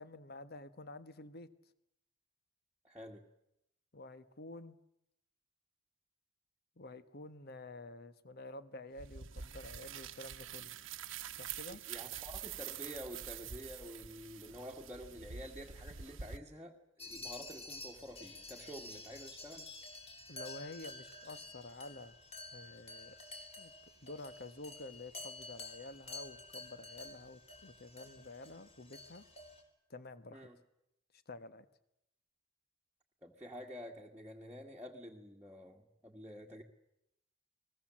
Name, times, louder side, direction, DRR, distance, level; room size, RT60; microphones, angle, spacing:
voice 1, 0.0-1.5 3.9-4.8 6.8-10.7 11.3-11.8 20.3-22.2 22.5-23.2 23.6-23.7 24.0-29.2 29.9-30.5 31.1-31.6, left 2 dB, 55° left, 12 dB, 1.4 m, -50 dB
voice 2, 2.8-3.2 11.7-19.7 30.3-30.6 33.2-36.6, equal, 10° right, -3 dB, 1.7 m, -49 dB
sound 1, 9.0-16.4, right 8 dB, 75° right, 1.1 m, -46 dB
sound 2, 17.0-29.6, left 2 dB, 30° left, 4.7 m, -50 dB
30.0 x 21.0 x 7.6 m, 0.84 s
head